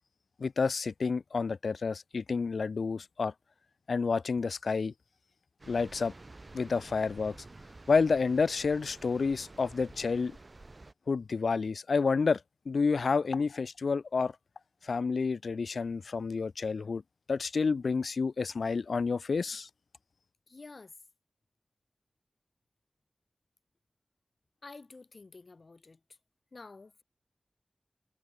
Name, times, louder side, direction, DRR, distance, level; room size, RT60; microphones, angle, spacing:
voice 1, 0.4-3.3 3.9-4.9 5.7-6.1 6.5-7.4 7.9-10.4 11.1-12.4 12.7-14.3 14.8-17.0 17.3-19.7, left 4 dB, 85° left, 0.5 m, -29 dB
sound 1, 5.6-10.9, right 2 dB, 50° right, 4.5 m, -51 dB
voice 2, 20.5-20.9 24.6-26.0 26.5-27.0, left 3 dB, 65° left, 6.2 m, -50 dB
cardioid pair, 40°, 0 cm